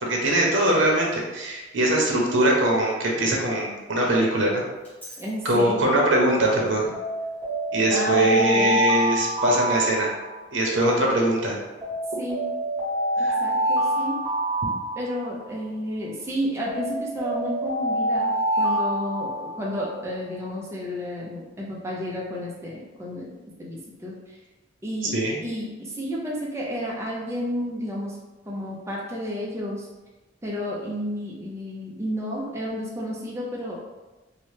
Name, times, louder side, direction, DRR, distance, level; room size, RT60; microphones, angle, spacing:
voice 1, 0.0-4.5 5.4-6.8 7.7-10.1 10.5-11.6 13.2-13.4 25.1-25.4, right 1 dB, 80° right, -1 dB, 0.7 m, -22 dB
Alarm, 4.8-5.2 6.9-10.7 11.8-15.6 16.7-19.9, right 1 dB, 10° left, 1.0 m, -26 dB
voice 2, 5.2-5.9 7.9-8.8 12.2-12.5 13.2-14.2 15.0-23.3 23.6-24.4 24.8-25.1 25.4-28.2 28.5-29.9 30.4-33.7, equal, 15° right, -4 dB, 0.4 m, -31 dB
2.8 x 2.1 x 3.2 m, 1.1 s
head